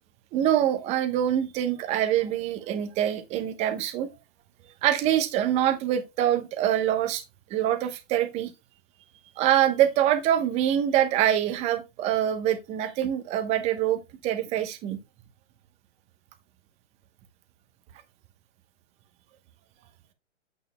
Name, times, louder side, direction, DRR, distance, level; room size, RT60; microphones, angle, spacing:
voice 1, 0.3-4.1 4.8-7.2 7.5-8.5 9.4-15.0, right 11 dB, 15° right, 1.0 m, -25 dB
9.3 x 8.3 x 2.2 m
hypercardioid pair, 140°, 37 cm